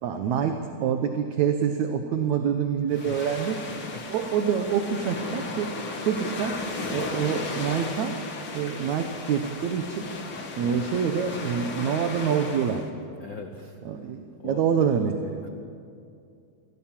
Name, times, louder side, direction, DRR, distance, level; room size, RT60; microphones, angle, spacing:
voice 1, 0.0-3.6 4.1-5.7 6.0-6.6 6.9-8.2 8.5-10.1 10.6-12.9 13.9-15.4, right 7 dB, 70° right, 6 dB, 2.2 m, -26 dB
voice 2, 2.9-3.2 3.9-4.0 10.7-10.9 13.2-13.8 14.4-14.6 15.4-15.5, left 5 dB, 65° left, 4 dB, 1.2 m, -40 dB
sound 1, 2.9-12.9, left 3 dB, 45° left, 2.4 m, -35 dB
25.5 x 17.0 x 7.5 m, 2.4 s
omnidirectional pair, 3.7 m